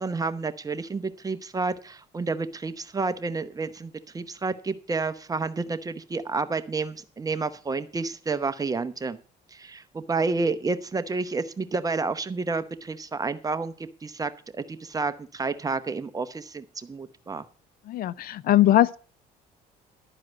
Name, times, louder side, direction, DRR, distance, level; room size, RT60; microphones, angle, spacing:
voice 1, 0.0-9.2 9.5-13.7 14.0-17.4, right 4 dB, 20° right, 0.8 m, -30 dB
voice 2, 17.9-19.0, left 14 dB, 60° left, 0.5 m, -20 dB
12.0 x 4.8 x 7.8 m
cardioid pair, 110°, 17 cm